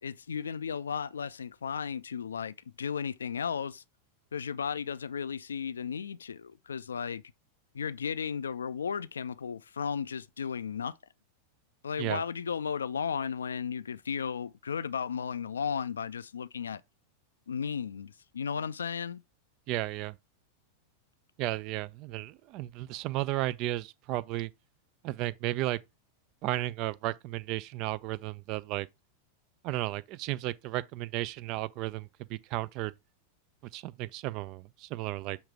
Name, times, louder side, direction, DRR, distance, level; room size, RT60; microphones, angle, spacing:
voice 1, 0.0-3.8 4.3-7.2 7.7-11.0 11.8-16.8 17.5-19.2, left 7 dB, 70° left, 0.3 m, -34 dB
voice 2, 19.7-20.2 21.4-24.5 25.0-25.8 26.4-28.9 29.6-32.9 33.7-35.4, right 16 dB, 40° right, 0.4 m, -34 dB
7.2 x 2.8 x 4.7 m
figure-of-eight pair, 90°, 0 cm